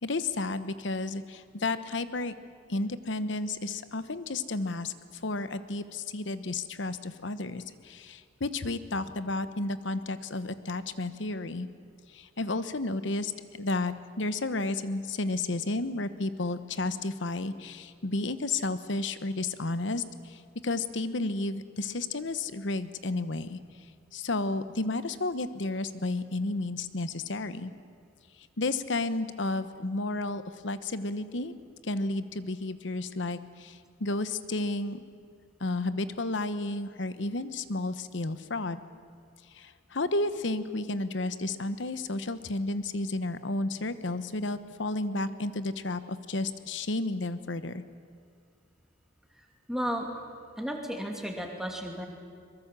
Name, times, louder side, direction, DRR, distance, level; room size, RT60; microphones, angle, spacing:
voice 1, 0.0-2.3 2.7-4.9 5.2-11.7 12.1-23.6 24.1-27.7 28.6-31.5 31.8-35.0 35.6-38.8 39.5-47.8, left 2 dB, 65° left, 13 dB, 1.0 m, -32 dB
voice 2, 49.7-50.1 50.6-52.1, equal, 5° right, 1 dB, 2.7 m, -33 dB
23.0 x 21.5 x 7.5 m, 2.1 s
head